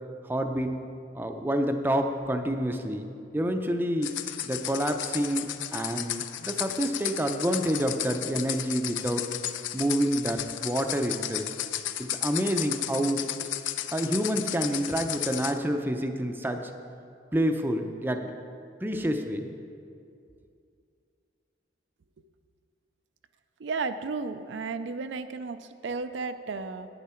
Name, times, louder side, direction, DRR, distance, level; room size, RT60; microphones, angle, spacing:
voice 1, 0.2-0.7 1.1-3.1 3.3-4.1 4.4-9.3 9.7-11.5 12.0-13.2 13.9-16.6 17.3-18.2 18.8-19.5, equal, 10° right, 5 dB, 0.5 m, -28 dB
sound 1, 4.0-15.6, left 12 dB, 85° left, 0.4 m, -34 dB
voice 2, 23.6-26.9, right 4 dB, 75° right, 9 dB, 0.4 m, -33 dB
10.5 x 9.3 x 4.4 m, 2.4 s
head